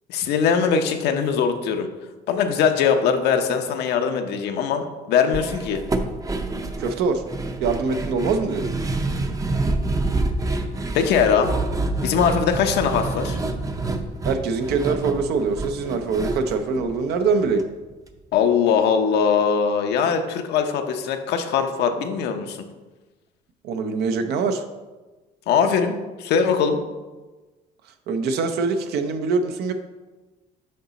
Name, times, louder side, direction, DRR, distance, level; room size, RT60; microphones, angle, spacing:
voice 1, 0.1-1.9 2.3-5.8 10.9-11.5 12.0-13.4 18.3-22.6 25.5-26.8, left 6 dB, 80° left, 6 dB, 0.6 m, -21 dB
sound 1, 5.3-17.6 17.9-18.0 18.3-18.5, right 2 dB, 20° right, 0.5 m, -27 dB
voice 2, 6.8-7.2 7.6-8.7 14.2-17.7 23.6-24.6 28.1-29.7, right 4 dB, 75° right, 7 dB, 0.5 m, -23 dB
6.5 x 3.9 x 4.0 m, 1.2 s
cardioid pair, 110°, 17 cm